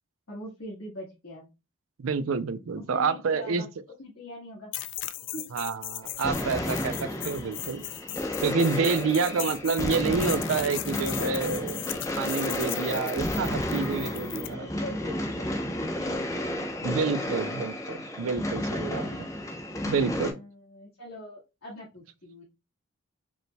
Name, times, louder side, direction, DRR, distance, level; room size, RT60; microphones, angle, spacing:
voice 1, 0.3-1.5 2.7-3.7 4.0-4.7 5.3-5.4 9.2-9.5 13.7-17.7 18.9-19.2 20.2-22.4, left 1 dB, 85° left, 1.4 m, -43 dB
voice 2, 2.0-3.6 5.5-7.9 8.4-11.8 12.2-14.6 16.8-19.1 19.9-20.4, right 5 dB, 85° right, 0.4 m, -28 dB
sound 1, 4.7-14.5, left 14 dB, 60° left, 0.3 m, -37 dB
sound 2, 6.0-20.3, left 1 dB, 15° left, 0.6 m, -32 dB
5.2 x 3.2 x 2.2 m
head